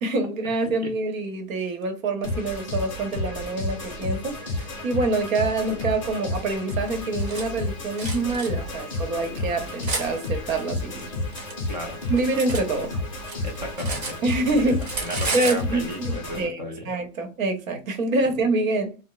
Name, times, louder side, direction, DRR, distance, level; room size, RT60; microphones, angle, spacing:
voice 1, 0.0-11.1 12.1-13.0 14.2-14.9 15.3-19.0, right 2 dB, 80° right, 1.0 m, -26 dB
sound 1, 2.2-16.5, left 2 dB, 25° left, 0.4 m, -31 dB
Cutlery silverware, 6.9-7.4 8.0-8.5 9.2-10.1 10.9-12.7 13.0-14.5 14.8-15.6, right 3 dB, 50° right, 1.0 m, -32 dB
voice 2, 11.7-12.0 13.4-14.2 14.5-14.7 15.0-16.9, equal, 35° right, 0.4 m, -34 dB
2.3 x 2.0 x 3.8 m
supercardioid pair, 180°, 41 cm